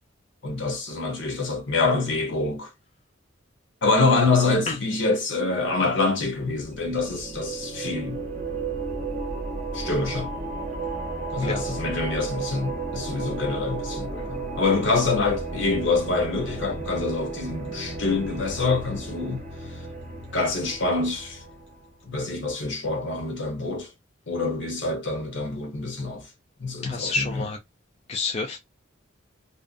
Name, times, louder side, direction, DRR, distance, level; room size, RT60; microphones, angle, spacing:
voice 1, 0.4-2.7 3.8-8.2 9.7-10.4 11.3-19.4 20.3-21.4 22.0-23.9 24.3-26.3 26.6-27.4, left 3 dB, 65° left, 0.9 m, -26 dB
sound 1, 6.5-21.9, right 3 dB, 35° right, 0.7 m, -34 dB
voice 2, 26.8-27.6 28.1-28.6, left 3 dB, 35° left, 0.3 m, -28 dB
2.6 x 2.1 x 2.4 m
head